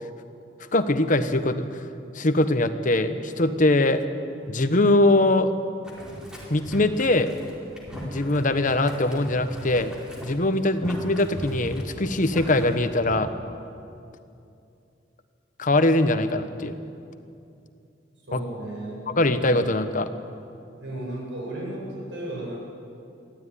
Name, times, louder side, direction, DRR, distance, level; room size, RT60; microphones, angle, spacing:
voice 1, 0.7-1.7 2.1-4.0 4.5-5.5 6.5-7.4 8.0-9.9 10.2-13.3 15.6-16.7 18.3-18.4 19.1-20.1, left 2 dB, 45° left, 9 dB, 1.2 m, -22 dB
Boiling, 5.8-13.2, equal, 5° right, 4.2 m, -39 dB
voice 2, 18.3-19.3 20.8-22.6, right 1 dB, 75° right, -2 dB, 7.2 m, -34 dB
22.5 x 15.0 x 9.9 m, 2.6 s
head